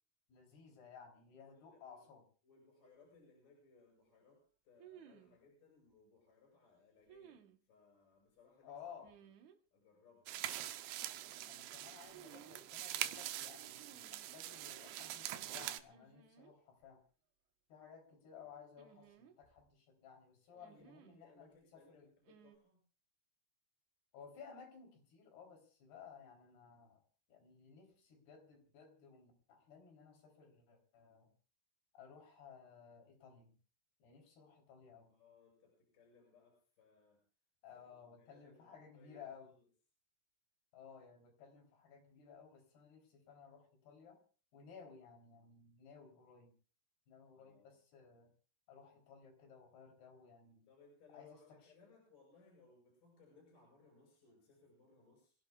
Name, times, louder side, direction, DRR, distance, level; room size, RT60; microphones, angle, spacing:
voice 1, 0.3-2.2 8.6-9.1 11.4-17.0 17.7-22.1 24.1-27.0 27.3-31.3 31.9-33.5 34.0-35.1 37.6-39.5 40.7-44.2 44.5-46.5 47.1-48.3 48.7-50.6 51.1-51.7, left 6 dB, 75° left, 3 dB, 5.6 m, -57 dB
voice 2, 1.4-2.0 2.4-9.3 9.7-10.6 20.5-20.9 21.2-22.8 35.1-37.2 37.7-39.3 39.6-39.7 47.3-47.7 50.7-55.3, left 4 dB, 55° left, -1 dB, 8.5 m, -66 dB
sound 1, 2.8-2.9 4.8-5.4 7.1-7.6 9.0-9.6 12.1-12.6 13.8-14.4 15.9-16.5 16.8-16.9 18.8-19.7 20.6-21.2 22.2-22.6, right 8 dB, 60° right, 2.1 m, -60 dB
sound 2, 10.3-15.8, right 13 dB, 90° right, 2.9 m, -44 dB
27.5 x 16.5 x 2.4 m, 0.41 s
omnidirectional pair, 4.7 m